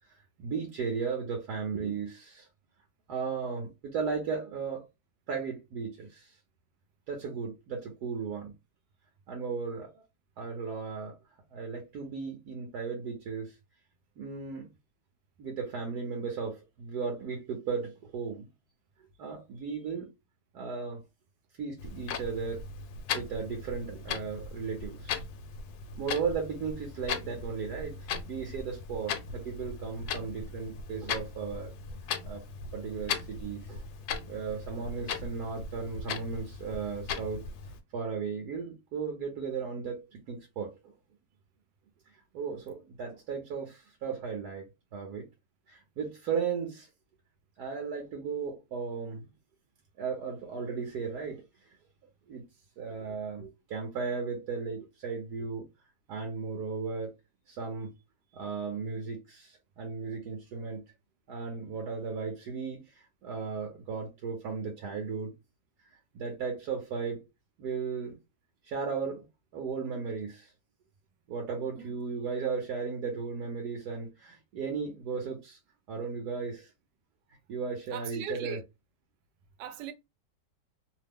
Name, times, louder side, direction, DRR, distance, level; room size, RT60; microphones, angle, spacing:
voice 1, 0.4-2.5 3.1-4.8 5.3-6.3 7.1-8.5 9.3-10.0 10.4-11.2 11.5-13.5 14.2-14.7 15.4-18.4 19.2-20.1 20.5-21.0 21.6-22.6 23.1-25.2 26.0-27.9 28.3-31.7 32.2-32.4 32.7-33.8 34.2-37.4 37.9-40.7 42.3-45.3 45.7-46.9 47.6-49.3 50.0-51.4 52.3-52.4 52.8-55.7 56.1-57.1 57.5-57.9 58.3-60.8 61.3-62.8 63.2-65.3 66.1-67.2 67.6-68.2 68.7-69.3 69.5-70.5 71.3-75.6 75.9-76.7 77.5-78.6, right 5 dB, 70° right, 1.3 m, -35 dB
Clock, 21.8-37.8, left 5 dB, 70° left, 1.0 m, -38 dB
voice 2, 77.9-78.6 79.6-79.9, right 6 dB, 90° right, 1.2 m, -39 dB
3.1 x 2.0 x 3.5 m
omnidirectional pair, 1.8 m